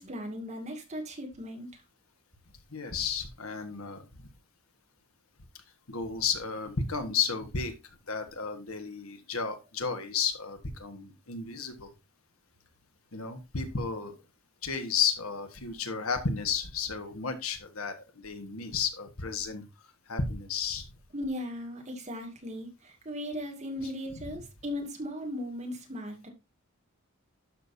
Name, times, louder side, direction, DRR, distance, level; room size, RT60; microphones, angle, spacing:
voice 1, 0.0-1.8 21.1-26.3, left 1 dB, 30° right, 2.3 m, -37 dB
voice 2, 2.7-4.0 5.9-7.7 8.1-11.9 13.1-14.2 14.6-19.6 20.1-20.8, left 6 dB, 75° left, 1.5 m, -32 dB
12.0 x 6.2 x 2.7 m
head